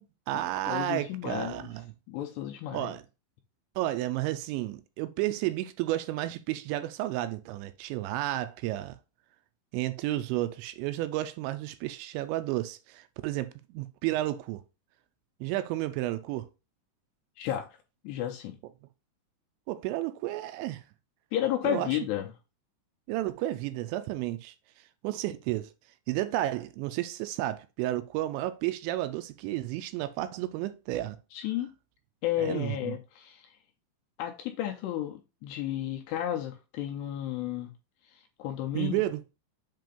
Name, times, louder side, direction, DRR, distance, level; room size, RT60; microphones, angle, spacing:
voice 1, 0.0-1.9 2.7-3.0 3.8-9.0 9.7-14.6 15.4-16.5 19.7-20.8 21.6-21.9 23.1-24.5 25.0-25.7 26.1-31.2 32.4-33.0 38.7-39.3, right 15 dB, 85° right, 2.8 m, -32 dB
voice 2, 0.7-1.7 2.1-2.9 17.4-17.7 18.0-18.6 21.3-22.3 31.3-31.7 32.2-33.5 34.2-37.7 38.1-39.0, left 12 dB, 80° left, 2.6 m, -32 dB
7.6 x 2.8 x 5.1 m
omnidirectional pair, 5.3 m